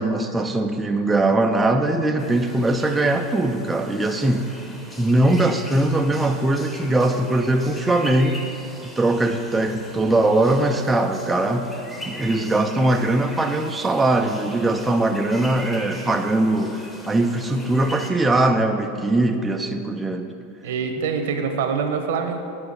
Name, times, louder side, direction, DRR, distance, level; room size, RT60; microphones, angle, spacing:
voice 1, 0.0-4.4 5.0-8.4 9.0-11.7 12.1-20.3, right 2 dB, 10° right, 4 dB, 0.4 m, -21 dB
sound 1, 2.2-18.1, left 1 dB, 10° left, 0.9 m, -39 dB
voice 2, 20.6-22.4, right 6 dB, 75° right, 5 dB, 1.0 m, -25 dB
8.8 x 4.7 x 6.6 m, 2.6 s
supercardioid pair, 150°, 0 cm